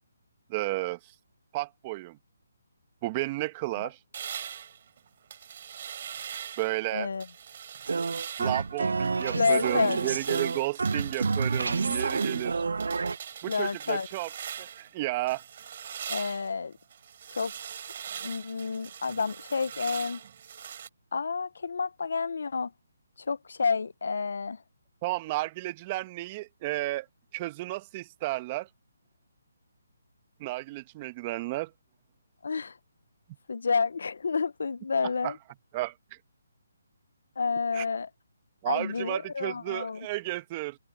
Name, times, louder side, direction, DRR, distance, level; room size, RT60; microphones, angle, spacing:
voice 1, 0.5-1.0 1.5-2.2 3.0-4.0 6.6-7.1 8.4-12.6 13.4-14.3 14.6-15.4 25.0-27.1 27.3-28.7 30.4-31.7 35.2-35.3 35.7-35.9 37.7-37.8 38.6-40.8, right 19 dB, 25° right, 1.5 m, -32 dB
sound 1, 4.1-6.8 7.2-8.7 9.0-14.9 15.3-20.9, right 8 dB, 45° right, 4.7 m, -41 dB
voice 2, 6.9-7.3 9.3-10.0 13.5-14.1 16.1-16.7 17.3-17.5 18.2-20.2 21.1-22.7 23.3-24.6 32.4-32.7 33.5-35.4 37.4-38.1 38.7-40.1, left 5 dB, 70° left, 1.0 m, -29 dB
sound 2, 7.9-13.2, right 4 dB, 75° right, 0.4 m, -29 dB
hypercardioid pair, 155°, 0 cm